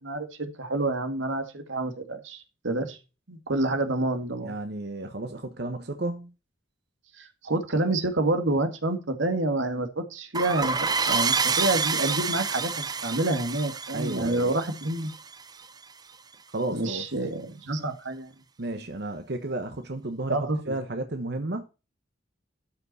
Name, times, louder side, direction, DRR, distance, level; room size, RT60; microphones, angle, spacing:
voice 1, 0.0-3.0 3.3-4.5 7.2-10.8 11.1-15.1 16.7-18.3 20.3-20.7, right 2 dB, 90° right, 1.9 m, -28 dB
voice 2, 4.4-6.3 13.9-14.5 16.5-17.1 18.6-21.7, right 2 dB, 60° right, 1.1 m, -33 dB
sound 1, 10.3-15.7, right 5 dB, 20° right, 0.6 m, -28 dB
13.0 x 5.6 x 4.2 m
head